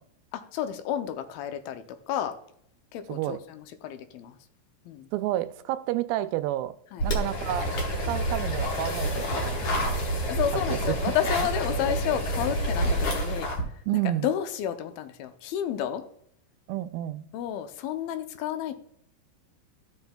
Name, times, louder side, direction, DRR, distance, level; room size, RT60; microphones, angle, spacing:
voice 1, 0.3-2.3 2.9-4.4 4.9-5.1 6.9-7.0 10.3-13.5 13.9-16.0 17.3-18.7, left 10 dB, 90° left, 2.5 m, -31 dB
voice 2, 3.1-3.4 5.1-6.8 7.0-7.7 8.1-10.0 10.5-11.0 11.4-11.5 13.9-14.3 16.7-17.3, right 14 dB, 85° right, 2.3 m, -30 dB
sound 1, 7.0-13.6, equal, 70° left, 1.1 m, -28 dB
14.0 x 6.0 x 2.2 m
omnidirectional pair, 4.1 m